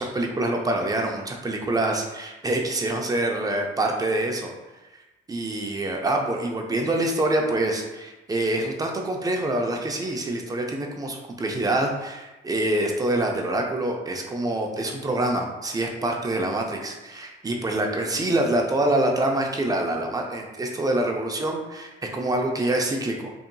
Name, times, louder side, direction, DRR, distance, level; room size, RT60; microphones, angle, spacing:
voice 1, 0.0-4.5 5.3-23.3, right 1 dB, 20° right, 2 dB, 0.4 m, -26 dB
2.7 x 2.5 x 2.2 m, 1.1 s
cardioid pair, 90°, 20 cm